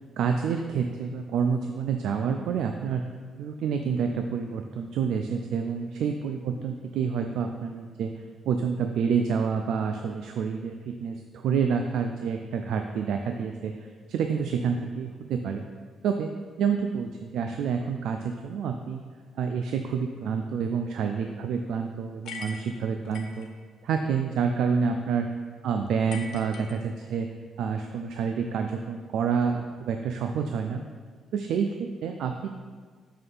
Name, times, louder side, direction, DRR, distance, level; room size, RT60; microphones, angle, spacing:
voice 1, 0.2-15.6 16.0-16.3 16.6-19.1 19.4-23.5 23.8-25.3 25.6-27.3 27.6-30.8 31.3-32.5, right 6 dB, 80° right, 5 dB, 0.3 m, -28 dB
sound 1, 22.2-23.5 26.1-27.3, left 4 dB, 70° left, 0.7 m, -41 dB
5.5 x 3.3 x 5.5 m, 1.5 s
cardioid pair, 90°, 0 cm